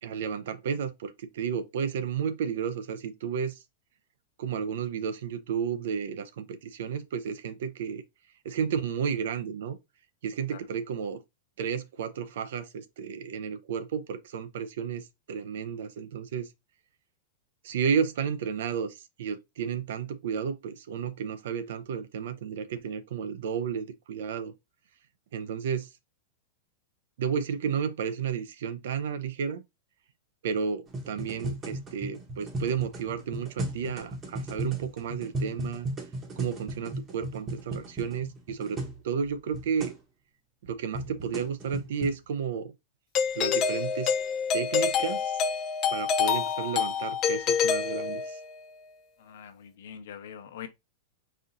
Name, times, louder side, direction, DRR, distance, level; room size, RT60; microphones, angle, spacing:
voice 1, 0.0-3.6 4.4-8.0 8.4-9.8 10.2-11.2 11.6-16.5 17.6-24.5 25.3-25.9 27.2-29.6 30.4-35.9 36.4-39.9 40.6-42.7 43.3-44.1 44.5-45.5 45.9-48.4, right 7 dB, 75° right, 0.6 m, -32 dB
sound 1, 30.9-39.0 39.2-39.3 39.5-40.0 40.6-42.2, right 1 dB, 25° right, 1.0 m, -36 dB
Doorbell, 43.1-48.6, left 6 dB, 30° left, 0.6 m, -27 dB
voice 2, 49.2-50.7, left 9 dB, 75° left, 0.8 m, -43 dB
4.3 x 2.5 x 3.9 m
supercardioid pair, 145°, 0 cm